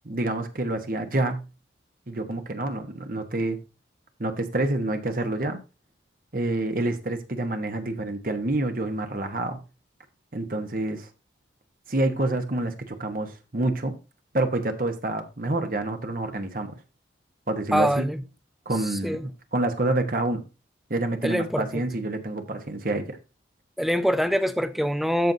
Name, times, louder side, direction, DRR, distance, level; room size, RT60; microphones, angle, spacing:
voice 1, 0.0-1.4 2.1-3.6 4.2-5.6 6.3-9.6 10.3-11.1 11.9-13.9 14.3-16.7 17.5-18.1 18.7-19.2 19.5-20.4 20.9-23.2, right 2 dB, 50° right, 1.1 m, -27 dB
voice 2, 17.7-18.2 18.8-19.3 21.2-21.8 23.8-25.3, equal, ahead, 0.5 m, -24 dB
13.5 x 5.3 x 2.7 m
head